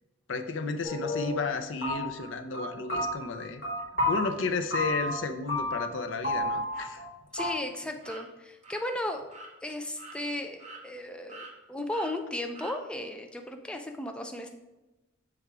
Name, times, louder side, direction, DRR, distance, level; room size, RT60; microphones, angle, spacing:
voice 1, 0.3-3.6 4.1-7.0, left 4 dB, 70° left, 8 dB, 0.6 m, -33 dB
sound 1, 0.8-1.5 1.8-2.3 2.5-4.3 4.7-5.2 5.5-6.0 6.2-7.1 7.4-7.5, left 1 dB, 45° left, 2.1 m, -30 dB
sound 2, 6.7-6.9 7.3-7.5 8.0-8.2 8.6-8.8 9.3-9.5 10.0-10.2 10.6-11.0 11.3-11.5 11.9-12.1 12.6-12.8, right 2 dB, 35° right, 1.0 m, -45 dB
voice 2, 7.3-9.2 9.6-14.5, left 1 dB, 5° left, 4 dB, 0.4 m, -35 dB
6.8 x 3.5 x 4.7 m, 1.0 s
head